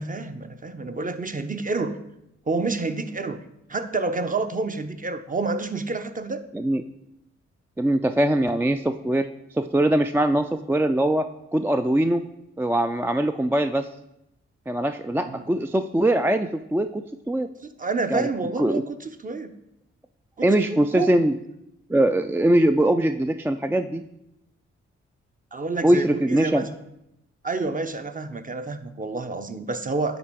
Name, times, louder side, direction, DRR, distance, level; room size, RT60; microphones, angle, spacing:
voice 1, 0.0-2.0 2.5-3.4 3.7-6.4 15.2-15.4 17.6-19.5 20.4-21.2 25.5-26.7 27.4-30.2, right 3 dB, 30° right, 9 dB, 0.7 m, -29 dB
voice 2, 7.8-11.3 11.5-12.2 12.6-13.9 14.7-17.5 18.1-18.3 18.6-18.8 20.4-21.3 21.9-24.0 25.8-26.7, right 1 dB, 10° right, 8 dB, 0.3 m, -22 dB
9.5 x 3.4 x 4.5 m, 0.85 s
supercardioid pair, 40°, 29 cm